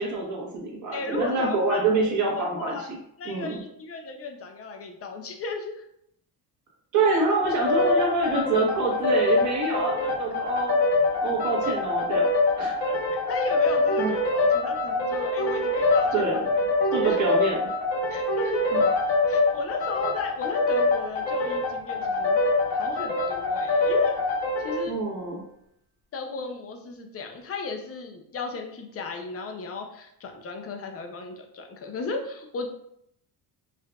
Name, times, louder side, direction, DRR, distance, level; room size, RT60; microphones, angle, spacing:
voice 1, 0.0-2.8 3.2-3.6 6.9-10.8 11.2-12.3 12.6-12.9 14.0-14.1 16.1-16.4 16.9-17.7 18.7-18.8 24.9-25.4, right 3 dB, 40° right, -2 dB, 1.2 m, -26 dB
voice 2, 0.9-1.8 2.4-2.9 3.2-5.8 12.9-16.2 17.0-17.2 18.1-18.7 19.3-22.4 22.7-24.1 24.6-25.0 26.1-32.7, left 4 dB, 35° left, 4 dB, 0.4 m, -34 dB
sound 1, 7.4-24.9, left 2 dB, 55° left, 1.0 m, -24 dB
4.6 x 2.4 x 2.2 m, 0.75 s
cardioid pair, 135°, 45 cm